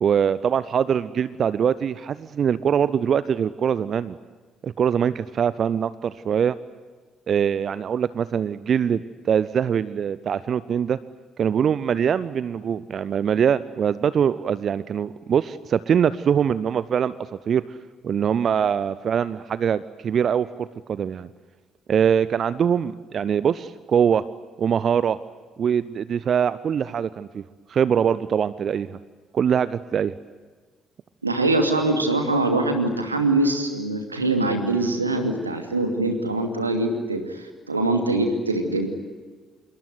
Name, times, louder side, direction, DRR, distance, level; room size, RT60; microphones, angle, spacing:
voice 1, 0.0-4.2 4.6-6.6 7.3-11.0 11.4-17.1 17.5-17.8 18.0-21.3 21.9-24.2 24.6-25.2 25.6-27.4 27.7-29.0 29.3-30.1, right 8 dB, 45° right, 17 dB, 0.7 m, -23 dB
voice 2, 31.2-38.9, right 2 dB, 85° right, 5 dB, 2.6 m, -23 dB
27.0 x 23.0 x 9.5 m, 1.4 s
figure-of-eight pair, 45°, 0 cm